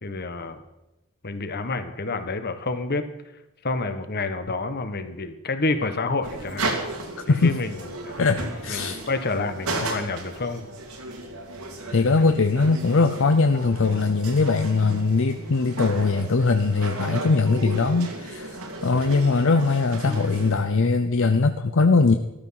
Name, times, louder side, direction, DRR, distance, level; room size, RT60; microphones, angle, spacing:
voice 1, 0.0-0.6 1.2-3.1 3.6-6.7 7.3-8.2 8.7-10.6 18.8-19.1, left 3 dB, 45° left, 9 dB, 1.3 m, -29 dB
sound 1, 6.2-20.5, right 2 dB, 85° right, 2.8 m, -34 dB
voice 2, 7.2-7.6 8.2-9.0 11.9-22.2, left 3 dB, 65° left, 8 dB, 0.7 m, -21 dB
13.5 x 13.0 x 5.8 m, 0.95 s
head